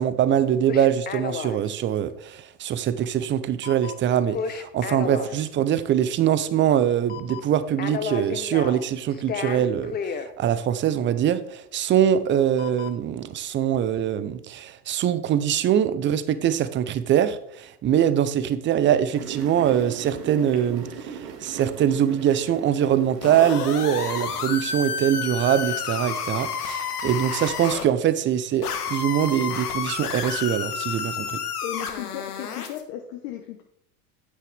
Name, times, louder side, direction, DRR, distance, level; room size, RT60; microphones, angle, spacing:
voice 1, 0.0-31.4, right 10 dB, 25° right, 14 dB, 0.6 m, -23 dB
sound 1, 0.7-1.7 3.6-5.5 6.7-6.8 7.1-7.5 7.8-8.9 9.1-10.3 12.6-12.9, left 7 dB, 20° left, 0.6 m, -32 dB
sound 2, 19.1-26.7, right 7 dB, 55° right, 2.0 m, -40 dB
sound 3, 23.2-27.8 28.6-32.8, left 6 dB, 80° left, 1.3 m, -30 dB
voice 2, 31.6-33.6, left 11 dB, 55° left, 4 dB, 1.1 m, -35 dB
9.7 x 8.2 x 3.4 m, 0.72 s
hypercardioid pair, 90°, 45 cm